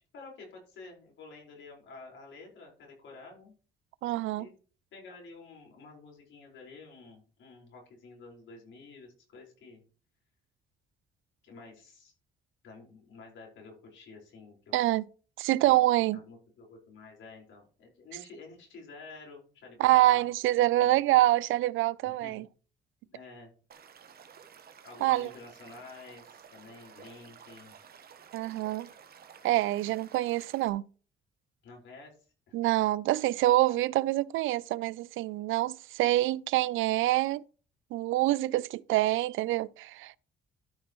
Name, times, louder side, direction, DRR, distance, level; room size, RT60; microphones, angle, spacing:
voice 1, 0.1-3.5 4.4-4.5 4.9-9.8 11.4-12.1 12.6-14.8 15.6-15.8 16.1-20.3 20.8-21.0 22.0-22.4 23.1-23.5 24.8-27.8 31.6-32.2 32.5-32.6, left 3 dB, 70° left, 4.8 m, -50 dB
voice 2, 4.0-4.5 14.7-15.0 15.4-16.2 19.8-22.4 25.0-25.3 28.3-28.9 29.4-30.8 32.5-37.4 37.9-40.2, right 16 dB, 85° right, 0.4 m, -26 dB
Stream / Liquid, 23.7-30.7, right 7 dB, 50° right, 1.2 m, -53 dB
12.5 x 6.0 x 3.1 m
cardioid pair, 90°, 20 cm